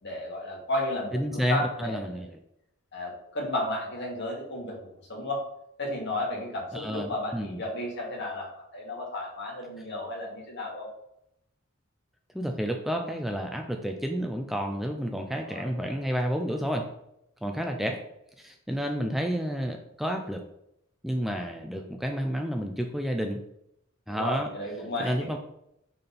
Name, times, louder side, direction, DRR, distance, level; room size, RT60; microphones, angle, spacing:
voice 1, 0.0-2.3 2.9-4.8 5.1-5.4 5.8-10.9 15.4-15.8 24.1-25.3, left 1 dB, 55° left, -2 dB, 2.2 m, -33 dB
voice 2, 1.1-2.3 6.7-7.6 12.3-16.9 17.4-18.0 18.4-20.4 21.0-23.4 24.1-24.5 25.0-25.4, equal, ahead, 3 dB, 0.5 m, -30 dB
6.5 x 4.3 x 4.2 m, 0.79 s
head